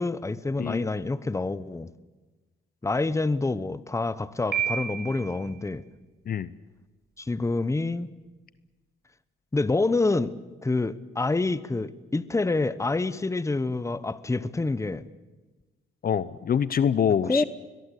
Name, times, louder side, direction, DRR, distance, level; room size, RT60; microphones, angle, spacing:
voice 1, 0.0-1.9 2.8-5.8 7.2-8.1 9.5-10.3 10.6-15.1 17.2-17.4, left 3 dB, 15° left, 1.0 m, -27 dB
Piano, 4.5-5.5, right 8 dB, 55° right, 5.4 m, -30 dB
voice 2, 16.0-17.4, left 8 dB, 50° left, 0.8 m, -25 dB
22.0 x 22.0 x 8.4 m
cardioid pair, 90°, 20 cm